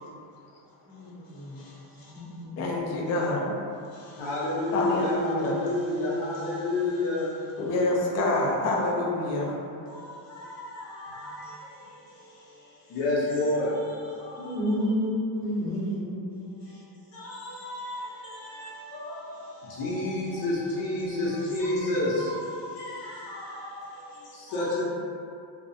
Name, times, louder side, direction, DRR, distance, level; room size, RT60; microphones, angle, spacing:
voice 1, 0.9-1.6 2.0-2.9 14.4-16.5, equal, 10° left, -14 dB, 0.7 m, -31 dB
voice 2, 1.6-2.1 3.9-7.6 9.9-14.7 16.6-16.8 17.1-24.8, left 2 dB, 60° left, -6 dB, 0.7 m, -31 dB
voice 3, 2.6-3.6 4.7-5.6 7.6-9.5, left 2 dB, 35° left, -2 dB, 0.4 m, -26 dB
2.3 x 2.1 x 2.6 m, 2.5 s
cardioid pair, 115°, 48 cm